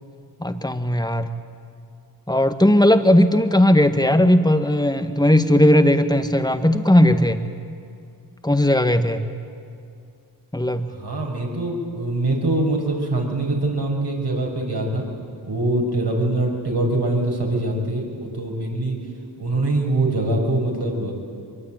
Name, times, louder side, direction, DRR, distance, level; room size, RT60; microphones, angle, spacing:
voice 1, 0.4-1.3 2.3-7.4 8.4-9.2 10.5-10.9, left 1 dB, 10° left, 8 dB, 1.9 m, -17 dB
voice 2, 10.9-15.0 15.5-19.0 19.4-21.1, right 2 dB, 65° right, 0 dB, 6.1 m, -23 dB
23.5 x 22.5 x 9.2 m, 2.4 s
cardioid pair, 45°, 43 cm